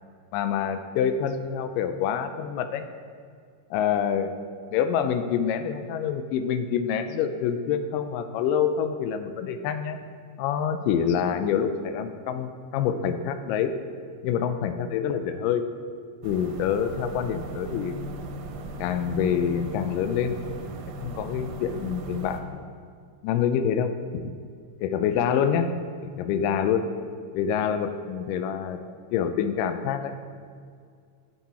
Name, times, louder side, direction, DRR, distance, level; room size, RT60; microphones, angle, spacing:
voice 1, 0.3-2.8 3.7-4.3 4.7-10.0 10.4-13.7 14.2-15.6 16.2-18.0 18.8-20.6 21.0-22.6 23.2-24.3 24.8-25.7 26.0-26.9 27.3-28.8 29.1-30.2, left 8 dB, 85° left, 9 dB, 2.2 m, -26 dB
sound 1, 16.2-22.4, right 2 dB, 90° right, 2.4 m, -37 dB
9.3 x 7.6 x 4.2 m, 2.2 s
omnidirectional pair, 3.7 m